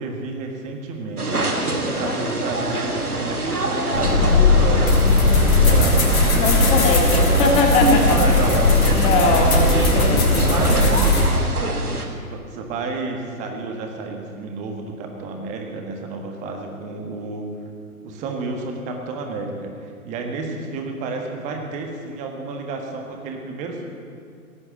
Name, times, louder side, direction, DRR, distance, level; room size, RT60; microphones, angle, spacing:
voice 1, 0.0-1.5 1.9-4.9 5.5-6.8 8.2-9.9 10.5-11.5 11.9-17.5 18.0-23.9, right 3 dB, 15° right, 3 dB, 1.5 m, -31 dB
sound 1, 1.2-12.0, right 1 dB, 80° right, 1.9 m, -25 dB
voice 2, 1.8-2.2 6.3-8.4 8.9-10.5, left 3 dB, 15° left, 3 dB, 1.1 m, -22 dB
sound 2, 3.9-11.3, left 2 dB, 70° left, 3.5 m, -17 dB
17.0 x 8.6 x 8.1 m, 2.3 s
figure-of-eight pair, 125°, 44 cm